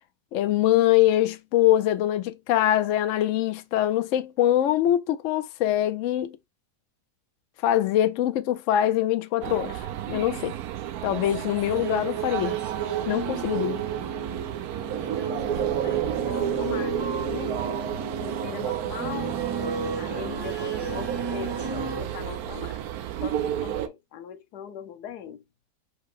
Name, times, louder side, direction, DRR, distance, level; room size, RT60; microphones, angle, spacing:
voice 1, 0.3-6.4 7.6-10.6 11.0-12.6 13.1-13.8, left 12 dB, 65° left, 0.8 m, -23 dB
sound 1, 9.4-23.9, right 10 dB, 75° right, 1.1 m, -31 dB
sound 2, 11.7-22.0, right 5 dB, 30° right, 0.4 m, -33 dB
voice 2, 15.2-17.6 18.2-19.4 20.0-22.8 23.2-25.4, left 9 dB, 85° left, 1.3 m, -40 dB
4.7 x 2.1 x 4.7 m
omnidirectional pair, 1.7 m